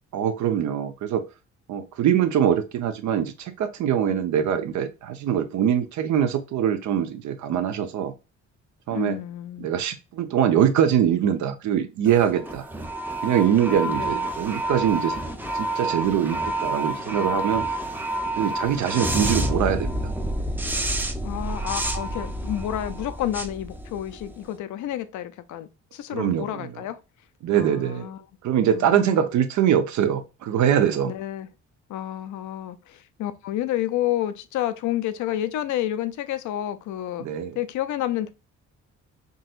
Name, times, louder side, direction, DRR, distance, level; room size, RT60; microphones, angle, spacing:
voice 1, 0.1-1.2 1.7-8.1 8.9-9.2 9.6-12.6 13.2-15.2 15.5-17.6 18.4-20.1 26.1-26.7 27.4-28.1 28.4-31.1 37.2-37.6, right 9 dB, 75° right, 0.7 m, -23 dB
voice 2, 8.9-9.7 13.8-14.3 21.2-27.0 27.5-28.2 28.7-29.3 31.0-31.5 31.9-37.3 37.5-38.3, left 12 dB, 75° left, 0.5 m, -30 dB
sound 1, 12.0-24.4, right 1 dB, 5° right, 0.5 m, -29 dB
3.8 x 2.8 x 2.4 m
cardioid pair, 90°, 30 cm